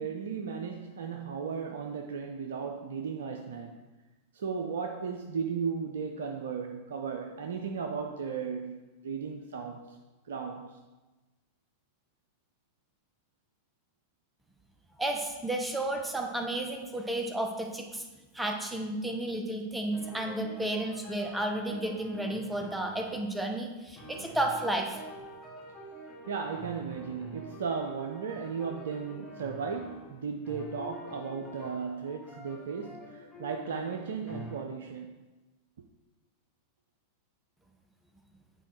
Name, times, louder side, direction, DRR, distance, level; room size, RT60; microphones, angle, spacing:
voice 1, 0.0-3.8 4.3-10.0 10.2-10.8 26.3-35.2, right 6 dB, 60° right, 0.4 m, -36 dB
voice 2, 15.0-18.0 18.3-25.0, right 1 dB, 5° right, 0.7 m, -32 dB
sound 1, 19.9-23.2 24.0-30.2 30.4-34.5, right 1 dB, 20° left, 2.1 m, -47 dB
8.8 x 4.3 x 3.1 m
figure-of-eight pair, 90°, 0 cm